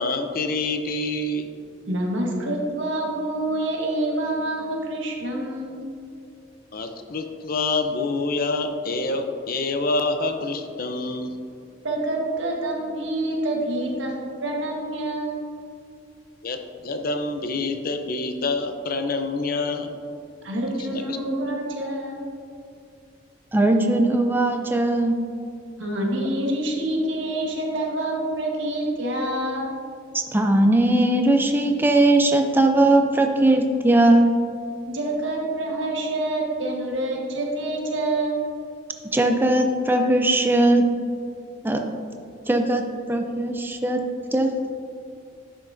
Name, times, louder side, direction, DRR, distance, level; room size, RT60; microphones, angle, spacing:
voice 1, 0.0-1.5 6.7-11.4 16.4-16.6 16.8-19.9 20.9-21.2, left 3 dB, 50° left, 6 dB, 0.6 m, -26 dB
voice 2, 1.9-5.8 11.8-14.1 14.4-15.5 20.4-22.3 25.8-29.7 34.9-38.3, right 1 dB, 85° right, -1 dB, 1.4 m, -27 dB
voice 3, 23.5-25.2 30.1-34.3 39.1-40.9 41.6-41.8 42.5-42.8 43.1-44.0 44.3-44.5, right 1 dB, 10° right, 4 dB, 0.4 m, -19 dB
10.5 x 6.0 x 2.6 m, 2.4 s
head